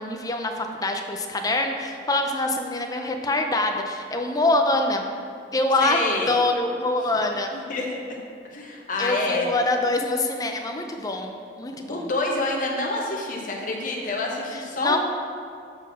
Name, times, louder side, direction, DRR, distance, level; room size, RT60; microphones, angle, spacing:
voice 1, 0.0-5.0 5.5-6.0 6.3-7.5 9.0-12.1 14.5-15.0, left 2 dB, 20° left, 4 dB, 0.6 m, -25 dB
voice 2, 5.8-6.3 7.5-8.2 8.5-9.5 11.9-15.0, left 2 dB, 50° left, -1 dB, 1.2 m, -27 dB
7.9 x 4.2 x 5.9 m, 2.4 s
head